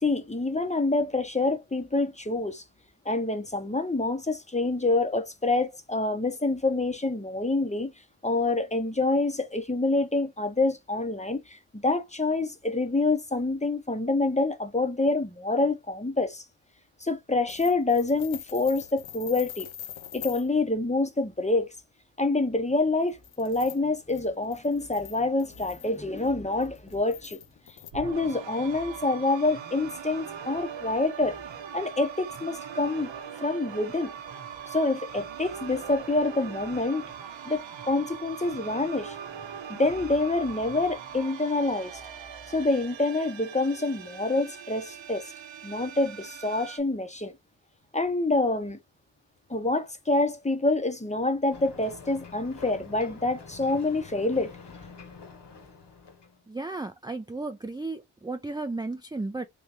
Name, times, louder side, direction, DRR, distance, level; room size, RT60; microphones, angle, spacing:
voice 1, 0.0-2.6 3.0-7.9 8.2-16.4 17.0-19.7 20.1-21.7 22.2-27.4 27.9-31.4 31.7-33.1 33.4-34.1 34.7-37.1 37.4-39.2 39.7-42.0 42.5-45.3 45.6-47.3 47.9-48.8 49.5-54.6, left 2 dB, 15° left, 0.8 m, -27 dB
sound 1, 17.5-20.5 22.9-27.9, left 11 dB, 70° left, 0.7 m, -44 dB
sound 2, 27.9-46.8, right 8 dB, 65° right, 0.9 m, -41 dB
Ocean, 51.5-56.4, left 4 dB, 55° left, 1.3 m, -46 dB
voice 2, 56.5-59.4, right 3 dB, 10° right, 0.4 m, -34 dB
3.5 x 3.1 x 2.8 m
cardioid pair, 75°, 49 cm